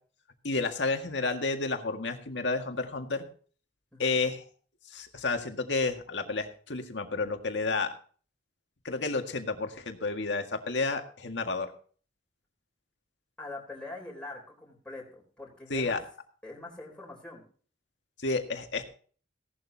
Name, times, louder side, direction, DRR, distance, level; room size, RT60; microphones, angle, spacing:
voice 1, 0.4-3.2 4.0-4.4 4.9-7.9 8.8-11.7 15.7-16.0 18.2-18.8, left 3 dB, 80° left, 5 dB, 1.9 m, -31 dB
voice 2, 13.4-16.0 16.4-17.4, left 2 dB, 5° left, -3 dB, 3.8 m, -43 dB
17.5 x 11.5 x 2.8 m, 0.43 s
head